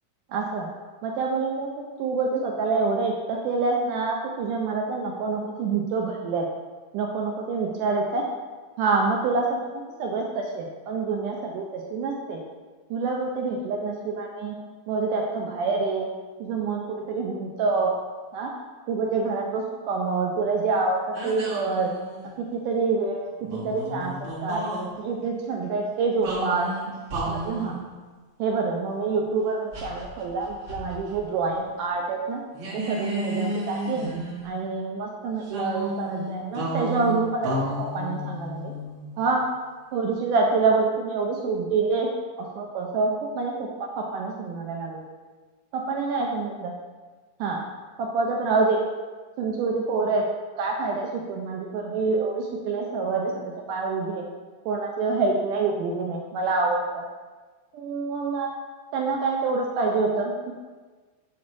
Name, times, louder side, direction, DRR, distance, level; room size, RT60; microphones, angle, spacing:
voice 1, 0.3-0.7 1.0-1.7 2.0-6.5 6.9-8.2 8.8-12.4 12.9-14.6 14.9-16.1 16.4-17.9 18.3-18.5 18.9-21.9 22.4-24.1 24.4-24.6 25.0-26.7 27.3-27.8 28.4-32.4 32.7-34.1 34.4-38.7 39.2-39.4 39.9-42.1 42.4-45.0 45.7-46.7 47.4-47.6 48.0-48.8 49.4-50.2 50.6-53.3 53.7-54.2 54.7-57.0 57.7-58.5 58.9-60.5, right 4 dB, 85° right, 0 dB, 1.9 m, -26 dB
sound 1, 21.1-22.4 23.4-24.9 26.2-27.8 29.7-31.2 31.5-31.6 32.5-34.7 35.5-39.2, right 1 dB, 45° right, 1.7 m, -32 dB
7.3 x 4.0 x 6.2 m, 1.4 s
omnidirectional pair, 4.4 m